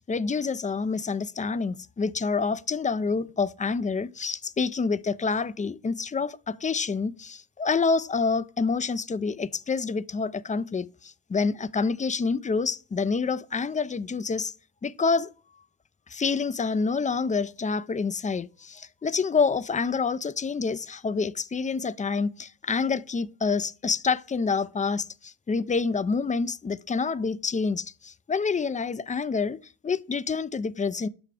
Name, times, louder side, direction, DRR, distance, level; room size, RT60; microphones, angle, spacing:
voice 1, 0.1-14.5 14.8-15.3 16.1-31.1, left 4 dB, 20° left, 0.4 m, -27 dB
5.6 x 4.9 x 5.0 m
cardioid pair, 50°, 35 cm